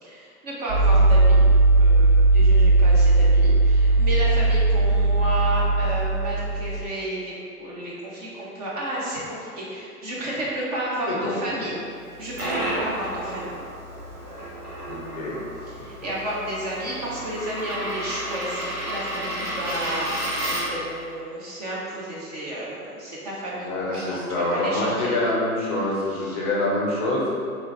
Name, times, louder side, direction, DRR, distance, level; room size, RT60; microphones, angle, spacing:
voice 1, 0.0-1.5 1.8-7.3 7.6-11.8 12.2-13.6 15.7-25.1 26.1-26.4, right 1 dB, 30° right, -6 dB, 0.5 m, -32 dB
sound 1, 0.7-6.8, right 2 dB, 65° right, 1.1 m, -17 dB
Coin (dropping), 12.0-20.9, right 1 dB, 90° right, 1.3 m, -32 dB
voice 2, 14.9-15.4 16.0-16.1 23.6-27.3, left 1 dB, 25° left, -5 dB, 0.5 m, -26 dB
3.7 x 3.0 x 2.9 m, 2.4 s
figure-of-eight pair, 105°, 45 cm